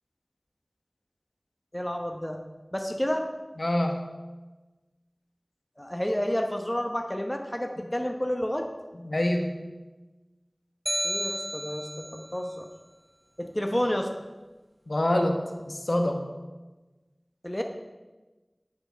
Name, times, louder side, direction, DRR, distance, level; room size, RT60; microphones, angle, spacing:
voice 1, 1.7-2.4 2.7-3.3 5.8-8.7 11.0-12.7 13.4-14.1 17.4-17.6, equal, 20° left, 3 dB, 0.9 m, -30 dB
voice 2, 3.6-4.0 9.0-9.5 14.9-15.4 15.7-16.2, left 1 dB, 65° left, 3 dB, 1.4 m, -25 dB
sound 1, 10.9-12.2, equal, 20° right, 0.8 m, -31 dB
10.0 x 9.0 x 5.1 m, 1.2 s
wide cardioid pair, 45°, 0 cm